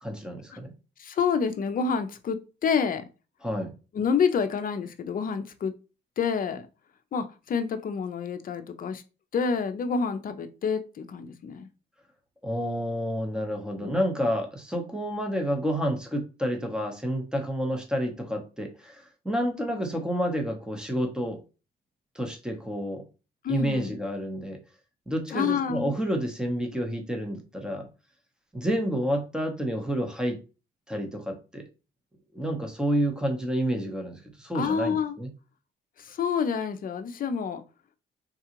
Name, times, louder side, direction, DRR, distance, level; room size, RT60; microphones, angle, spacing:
voice 1, 0.0-0.7 3.4-3.7 12.4-21.4 22.1-23.0 23.5-24.6 25.1-27.9 28.5-30.4 30.9-31.6 32.3-35.3, equal, 5° right, 0.9 m, -29 dB
voice 2, 1.0-3.0 3.9-5.7 6.2-6.7 7.1-9.0 9.3-11.7 13.8-13.9 23.4-24.0 25.3-25.9 34.5-35.2 36.0-37.6, left 6 dB, 45° left, 0.5 m, -28 dB
3.7 x 2.3 x 2.9 m
cardioid pair, 90°, 20 cm